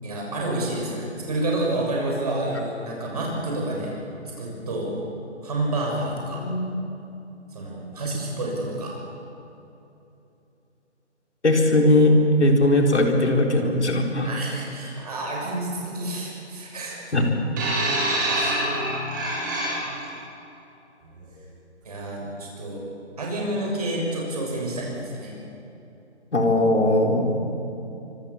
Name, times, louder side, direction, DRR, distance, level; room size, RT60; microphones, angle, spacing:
voice 1, 0.0-4.0 4.4-4.9 5.4-6.4 7.5-9.0 14.3-17.0 18.3-18.6 21.8-22.8 23.2-25.3, right 1 dB, 30° right, -2 dB, 6.7 m, -29 dB
voice 2, 6.4-6.8 11.4-14.3 17.1-17.3 26.3-27.4, left 1 dB, 70° left, 2 dB, 4.4 m, -19 dB
sound 1, 17.6-20.1 21.0-21.2, right 1 dB, 15° right, 6.0 m, -26 dB
26.0 x 25.0 x 7.2 m, 2.8 s
hypercardioid pair, 175°, 36 cm